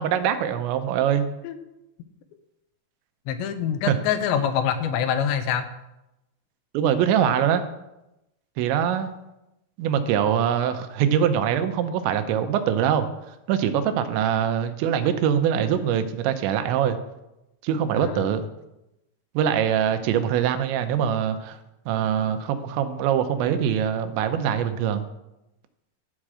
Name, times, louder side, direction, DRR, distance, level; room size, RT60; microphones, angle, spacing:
voice 1, 0.0-1.3 3.9-4.0 6.7-7.6 8.6-9.1 9.8-13.1 13.5-17.0 17.6-18.5 19.3-21.6 21.9-25.0, right 9 dB, 90° right, 9 dB, 3.1 m, -23 dB
voice 2, 3.3-5.7 18.0-18.3, left 8 dB, 80° left, 9 dB, 3.0 m, -25 dB
12.5 x 4.9 x 7.5 m, 0.92 s
omnidirectional pair, 5.1 m